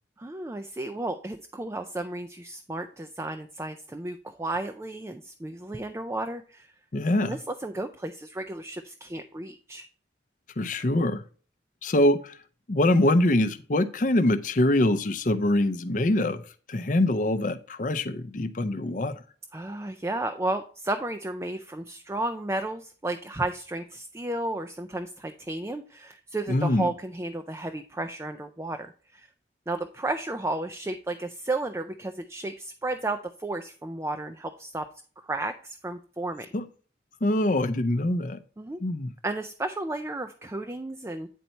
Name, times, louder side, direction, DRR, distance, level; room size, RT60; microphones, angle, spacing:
voice 1, 0.2-6.7 7.2-9.8 19.5-29.3 29.7-34.9 35.2-36.5 38.6-38.8 39.2-41.3, right 2 dB, 15° right, 0.3 m, -33 dB
voice 2, 6.9-7.4 10.6-11.2 11.8-12.3 12.7-16.4 16.7-19.2 26.5-26.9 36.5-36.6 37.2-38.4 38.8-39.1, left 1 dB, 45° left, 0.6 m, -24 dB
9.3 x 4.1 x 4.4 m
head